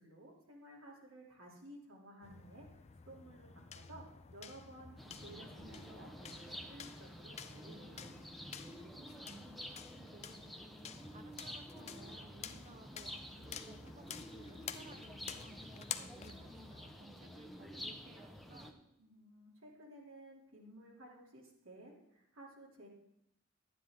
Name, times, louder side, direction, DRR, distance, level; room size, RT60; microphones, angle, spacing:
voice 1, 0.0-2.6 3.1-4.0 4.3-8.1 19.0-22.9, right 1 dB, 75° right, -2 dB, 2.8 m, -55 dB
sound 1, 2.2-17.0, left 8 dB, 30° left, 0.5 m, -51 dB
sound 2, 5.0-18.7, equal, ahead, 0.8 m, -50 dB
voice 2, 9.2-10.8 11.1-18.8, right 2 dB, 35° right, 7 dB, 0.9 m, -59 dB
11.5 x 9.9 x 3.6 m, 0.81 s
head